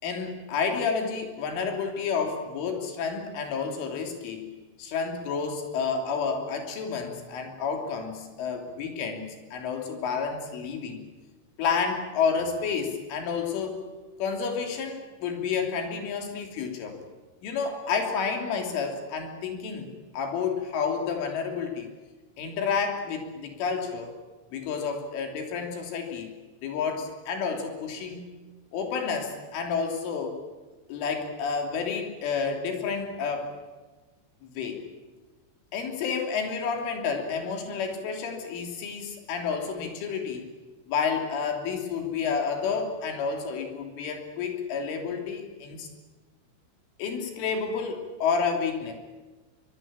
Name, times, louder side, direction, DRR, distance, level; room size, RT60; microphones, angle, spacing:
voice 1, 0.0-4.5 4.8-11.1 11.6-13.8 14.2-17.0 17.4-21.9 22.4-24.1 24.5-26.4 26.6-28.3 28.7-30.4 30.9-33.5 34.4-34.8 35.7-40.4 40.9-45.9 47.0-48.9, left 5 dB, 70° left, 3 dB, 5.7 m, -30 dB
24.0 x 23.5 x 8.8 m, 1.2 s
omnidirectional pair, 5.8 m